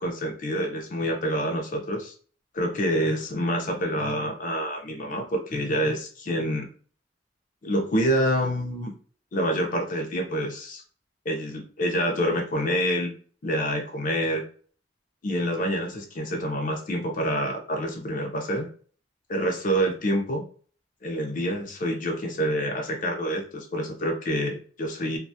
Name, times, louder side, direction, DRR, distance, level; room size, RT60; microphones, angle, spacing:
voice 1, 0.0-2.1 2.5-6.7 7.6-8.9 9.3-10.8 11.3-13.1 13.4-14.4 15.2-18.7 19.3-20.4 21.0-25.2, equal, 45° left, 2 dB, 0.5 m, -27 dB
2.5 x 2.2 x 2.6 m, 0.43 s
head